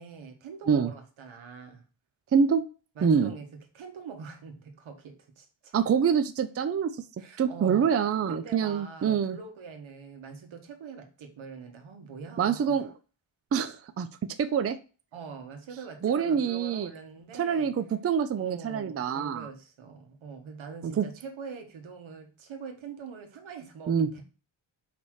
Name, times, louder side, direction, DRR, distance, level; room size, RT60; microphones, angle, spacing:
voice 1, 0.0-1.8 3.0-5.7 7.2-7.9 8.3-12.9 15.1-17.7 18.3-24.2, right 5 dB, 85° right, 1.6 m, -44 dB
voice 2, 2.3-2.6 3.0-3.3 5.7-6.9 7.4-9.4 12.4-12.9 13.5-14.8 16.0-16.9 17.4-19.5 21.0-21.1 23.9-24.1, right 7 dB, 35° right, 0.5 m, -25 dB
5.1 x 4.2 x 4.7 m
wide cardioid pair, 160°, 46 cm